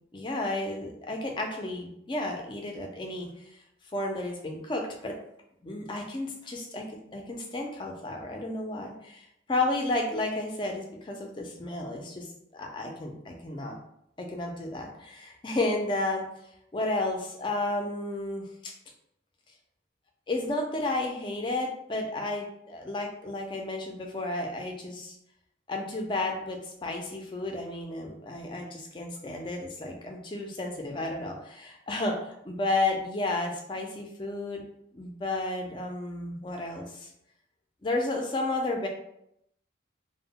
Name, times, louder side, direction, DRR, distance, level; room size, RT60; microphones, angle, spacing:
voice 1, 0.1-3.3 3.9-5.2 5.6-12.3 12.5-13.8 14.2-16.3 16.7-18.7 20.3-25.2 25.7-34.6 34.9-37.1 37.8-38.9, left 2 dB, 25° left, 2 dB, 0.3 m, -32 dB
2.0 x 2.0 x 3.5 m, 0.77 s
head